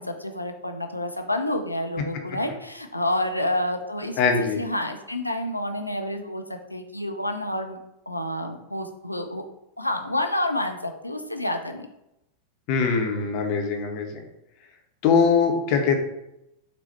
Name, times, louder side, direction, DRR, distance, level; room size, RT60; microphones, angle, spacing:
voice 1, 0.0-7.8 8.1-9.5 9.8-11.9, left 1 dB, 85° left, 5 dB, 0.3 m, -29 dB
voice 2, 4.2-4.6 12.7-14.2 15.0-16.0, left 5 dB, 40° left, 3 dB, 0.6 m, -22 dB
3.9 x 2.0 x 4.2 m, 0.86 s
figure-of-eight pair, 90°, 0 cm